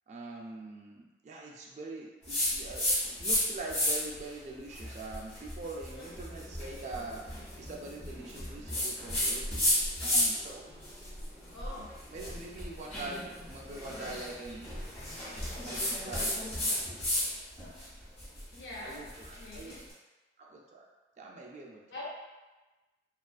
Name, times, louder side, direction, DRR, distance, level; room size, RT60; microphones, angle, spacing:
voice 1, 0.1-2.9 3.2-7.2 7.6-9.5 10.0-10.7 12.1-14.7 15.7-16.4 18.8-19.8 20.4-20.8 21.2-21.8, right 2 dB, 40° right, -1 dB, 0.3 m, -43 dB
sound 1, 2.3-3.4 3.7-4.2 4.7-10.5 10.8-17.3 17.6-19.8, left 1 dB, 35° left, 1.1 m, -32 dB
sound 2, 6.0-16.0, equal, 55° left, 1.2 m, -54 dB
voice 2, 11.5-11.9 18.5-19.0 19.4-19.8 21.9-22.1, left 2 dB, 90° left, -7 dB, 0.5 m, -43 dB
2.4 x 2.3 x 2.3 m, 1.2 s
head